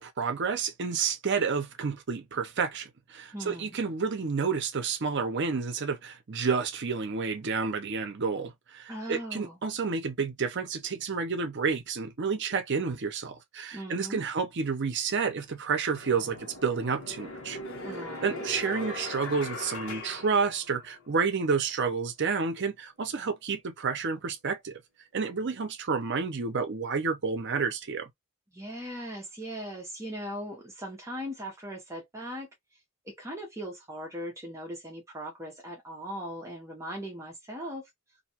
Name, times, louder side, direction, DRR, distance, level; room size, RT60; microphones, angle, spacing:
voice 1, 0.0-17.6 18.2-24.7 25.1-28.1, right 5 dB, 55° right, 0.6 m, -30 dB
voice 2, 3.3-3.8 8.9-9.6 13.7-14.2 17.8-18.5 28.5-32.5 33.0-37.9, equal, 15° right, 0.7 m, -39 dB
sound 1, 15.9-21.1, left 2 dB, 65° left, 1.1 m, -40 dB
2.6 x 2.3 x 2.7 m
head